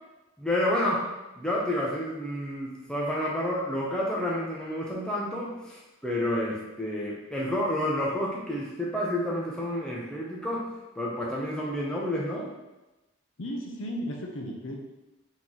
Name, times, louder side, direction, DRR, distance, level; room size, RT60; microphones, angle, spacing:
voice 1, 0.4-1.0 1.4-12.5, left 1 dB, 5° left, -5 dB, 0.6 m, -30 dB
voice 2, 13.4-14.8, equal, 65° left, 1 dB, 0.6 m, -34 dB
4.1 x 3.0 x 3.8 m, 1.0 s
head